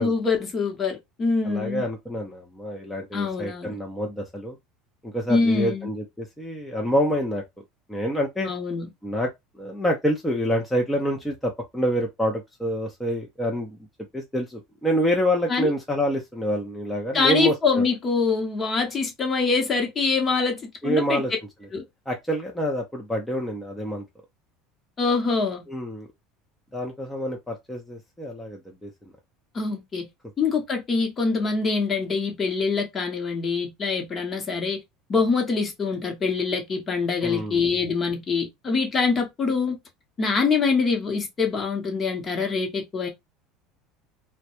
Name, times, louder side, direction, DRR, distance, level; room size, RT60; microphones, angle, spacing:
voice 1, 0.0-1.8 3.1-3.8 5.3-5.9 8.4-8.9 15.5-15.7 17.1-21.2 21.7-21.8 25.0-25.6 29.5-30.1 30.4-34.8 35.1-39.8 40.2-43.1, left 4 dB, 30° left, 0.9 m, -24 dB
voice 2, 1.4-4.6 5.0-7.4 7.9-8.5 9.0-9.3 9.6-13.8 14.1-17.9 20.8-21.3 22.1-24.0 25.7-26.1 26.7-28.9 37.2-37.6, equal, 5° left, 0.6 m, -27 dB
2.3 x 2.1 x 2.9 m
supercardioid pair, 110°, 0 cm